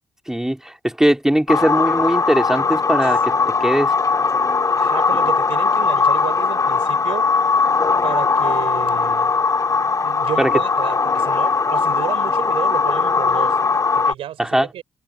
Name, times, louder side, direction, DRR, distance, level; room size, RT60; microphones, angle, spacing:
voice 1, 0.3-3.3 3.6-3.9 10.4-10.5 14.4-14.7, right 1 dB, 5° right, 3.6 m, -19 dB
sound 1, 1.5-14.1, left 4 dB, 40° left, 2.5 m, -19 dB
voice 2, 4.7-7.3 8.0-9.3 10.0-13.6 13.9-14.8, right 12 dB, 85° right, 4.8 m, -31 dB
supercardioid pair, 60°, 9 cm